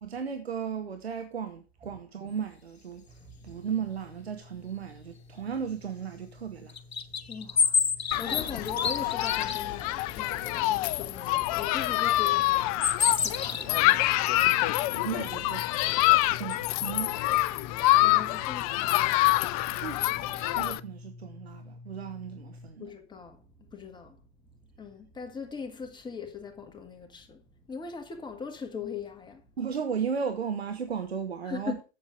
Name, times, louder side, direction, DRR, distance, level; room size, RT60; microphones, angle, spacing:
voice 1, 0.0-3.0 3.4-6.8 14.8-15.8 16.4-17.2 19.8-22.9 29.6-31.8, right 7 dB, 75° right, 1.0 m, -35 dB
sound 1, 3.1-22.7, left 3 dB, 20° right, 2.2 m, -50 dB
sound 2, 6.7-9.6 12.6-13.6, left 6 dB, 80° left, 1.0 m, -27 dB
voice 2, 7.3-7.8 8.2-12.9 13.2-14.1 17.7-19.3 22.8-24.2 24.8-27.4 27.7-29.4 31.4-31.8, left 5 dB, 15° left, 1.7 m, -40 dB
Human group actions, 8.1-20.8, left 17 dB, 35° left, 0.5 m, -26 dB
7.6 x 7.5 x 5.0 m
figure-of-eight pair, 90°, 31 cm